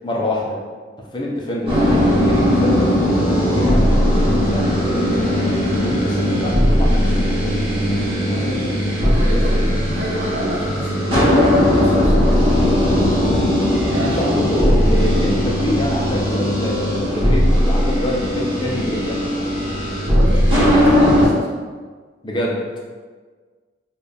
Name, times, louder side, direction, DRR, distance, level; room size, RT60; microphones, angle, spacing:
voice 1, 0.0-0.6 1.1-3.0 3.5-7.9 8.2-8.9 14.0-19.2 22.2-22.6, left 1 dB, 25° left, -2 dB, 0.6 m, -25 dB
sound 1, 1.7-21.3, equal, 30° right, 1.3 m, -18 dB
voice 2, 8.3-13.4 13.9-14.4 20.1-21.6, equal, 80° right, -3 dB, 0.8 m, -29 dB
4.3 x 2.4 x 3.4 m, 1.5 s
head